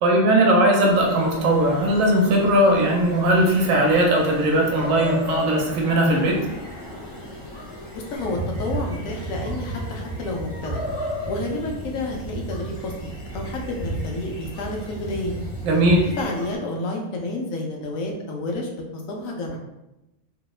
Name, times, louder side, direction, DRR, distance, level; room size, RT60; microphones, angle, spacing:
voice 1, 0.0-6.4 15.6-16.1, right 1 dB, 75° right, -1 dB, 1.0 m, -19 dB
sound 1, 0.8-16.6, left 1 dB, 25° left, 0.6 m, -37 dB
voice 2, 7.9-10.8 11.3-15.4 16.2-19.6, left 2 dB, 80° left, 0 dB, 1.0 m, -30 dB
sound 2, 8.2-16.2, right 2 dB, 55° left, 0.9 m, -34 dB
2.8 x 2.0 x 2.3 m, 0.95 s
omnidirectional pair, 1.4 m